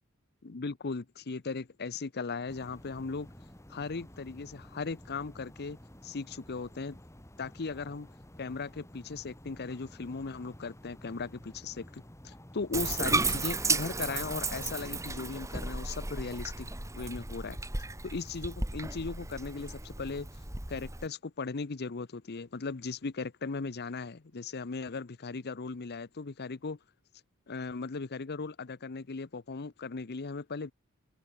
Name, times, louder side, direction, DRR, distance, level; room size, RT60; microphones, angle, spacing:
voice 1, 0.4-3.3 3.7-5.8 6.0-7.0 7.4-8.1 8.4-16.7 16.9-17.6 18.0-20.3 20.7-26.8 27.5-30.7, left 4 dB, 50° left, 0.7 m, -37 dB
sound 1, 2.5-15.0, equal, 15° left, 2.7 m, -52 dB
Bathtub (filling or washing), 12.7-21.1, right 3 dB, 15° right, 1.9 m, -34 dB
head